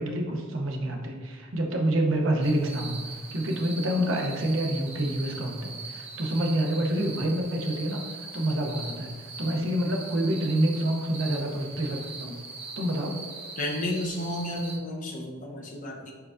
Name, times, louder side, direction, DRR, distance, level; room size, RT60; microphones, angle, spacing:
voice 1, 0.0-12.3 12.8-13.2, right 1 dB, 65° right, 2 dB, 0.7 m, -27 dB
sound 1, 2.4-14.8, right 4 dB, 30° right, 0.5 m, -41 dB
voice 2, 13.6-16.1, left 1 dB, 40° left, -1 dB, 0.7 m, -32 dB
4.6 x 4.6 x 2.5 m, 1.5 s
head